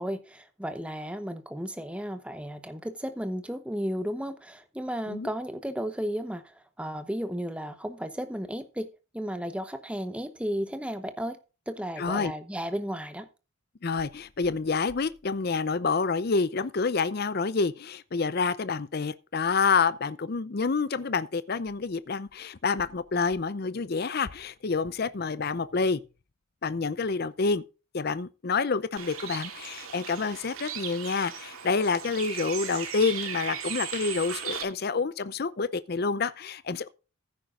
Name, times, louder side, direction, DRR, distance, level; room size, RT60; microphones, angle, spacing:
voice 1, 0.0-8.9 9.1-11.4 11.7-13.3, equal, 5° right, 0.9 m, -34 dB
voice 2, 12.0-12.3 13.8-26.0 26.6-27.6 27.9-36.9, left 4 dB, 45° left, 0.5 m, -28 dB
Bird, 29.0-34.6, right 8 dB, 75° right, 2.1 m, -37 dB
15.0 x 9.2 x 2.5 m
head